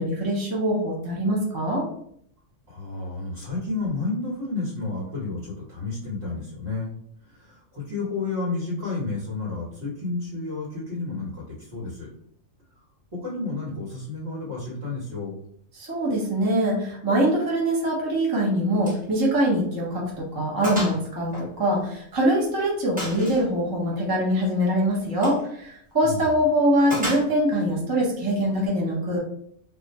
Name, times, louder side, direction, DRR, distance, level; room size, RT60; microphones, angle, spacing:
voice 1, 0.0-1.8 15.8-29.2, equal, 20° right, -4 dB, 0.6 m, -23 dB
voice 2, 2.7-6.9 7.2-12.1 13.1-15.3 26.0-26.3, left 3 dB, 55° right, -7 dB, 1.3 m, -31 dB
Gunshot gunfire, 18.8-19.1 19.4-19.5 20.0-20.1 20.6-21.0 21.3-22.3 23.0-23.5 25.1-25.4 26.9-27.6, equal, 5° right, 1.1 m, -32 dB
2.4 x 2.4 x 4.0 m, 0.68 s
omnidirectional pair, 1.3 m